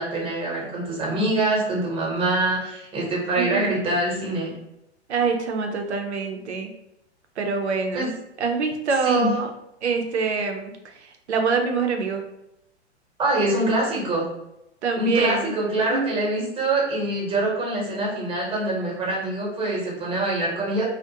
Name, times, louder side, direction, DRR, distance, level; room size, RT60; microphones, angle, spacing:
voice 1, 0.0-4.5 7.9-8.1 9.0-9.3 13.2-14.3 14.9-20.8, right 2 dB, 15° right, -4 dB, 0.8 m, -24 dB
voice 2, 3.4-3.7 5.1-6.7 7.4-8.1 8.4-9.5 9.8-12.2 14.8-15.5 15.9-16.1, right 5 dB, 80° right, 4 dB, 0.6 m, -25 dB
2.4 x 2.1 x 2.7 m, 0.85 s
figure-of-eight pair, 105°, 33 cm